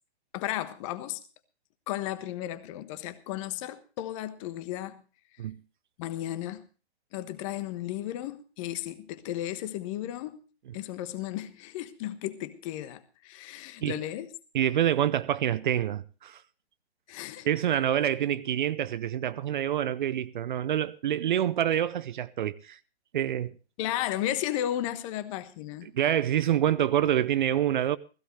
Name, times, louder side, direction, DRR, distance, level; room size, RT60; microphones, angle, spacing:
voice 1, 0.3-1.2 1.9-5.0 6.0-6.7 7.1-10.4 10.7-14.3 17.1-17.5 23.8-25.9, left 13 dB, 30° left, 1.2 m, -34 dB
voice 2, 14.5-16.4 17.4-22.8 23.1-23.5 25.8-28.0, right 11 dB, 45° right, 0.7 m, -27 dB
16.5 x 16.0 x 3.2 m
figure-of-eight pair, 130°, 33 cm